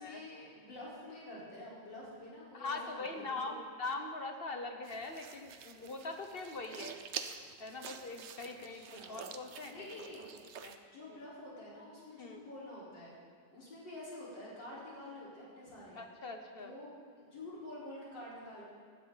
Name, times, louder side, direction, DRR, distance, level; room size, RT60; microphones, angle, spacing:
voice 1, 0.0-3.5 8.7-9.2 9.7-10.2 10.8-13.2 13.5-16.0 16.6-18.6, left 1 dB, 85° left, -8 dB, 5.0 m, -48 dB
voice 2, 2.5-7.0 7.6-9.9 10.6-10.8 11.1-11.2 12.2-12.4 15.9-16.7, left 3 dB, 45° left, 5 dB, 0.9 m, -42 dB
sound 1, 4.8-10.8, right 7 dB, 60° right, 0.7 m, -47 dB
16.0 x 13.0 x 4.0 m, 2.2 s
omnidirectional pair, 1.9 m